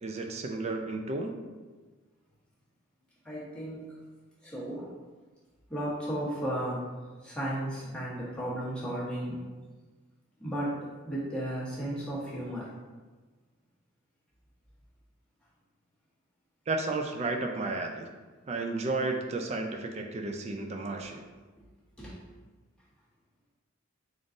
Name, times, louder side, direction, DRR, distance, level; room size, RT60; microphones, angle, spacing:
voice 1, 0.0-1.3 16.7-18.1 18.5-21.2, right 3 dB, 30° right, 3 dB, 0.3 m, -32 dB
voice 2, 3.2-3.9 4.4-4.9 5.7-6.9 7.2-9.4 10.4-12.7 20.3-20.4 22.0-22.2, right 1 dB, 5° left, -8 dB, 1.0 m, -34 dB
3.6 x 2.5 x 3.8 m, 1.3 s
head